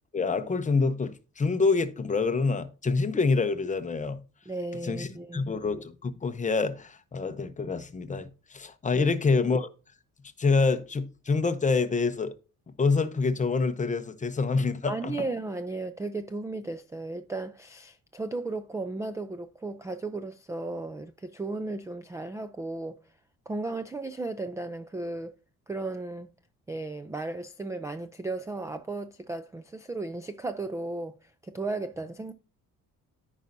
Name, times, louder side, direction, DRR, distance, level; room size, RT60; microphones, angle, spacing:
voice 1, 0.1-4.2 4.8-9.7 10.4-12.3 12.8-15.3, left 4 dB, 20° left, 0.8 m, -26 dB
voice 2, 4.5-5.5 8.9-9.0 14.9-23.0 23.5-25.3 25.7-26.3 26.7-32.3, right 2 dB, 10° right, 0.3 m, -35 dB
13.5 x 5.3 x 2.6 m
cardioid pair, 165°, 34 cm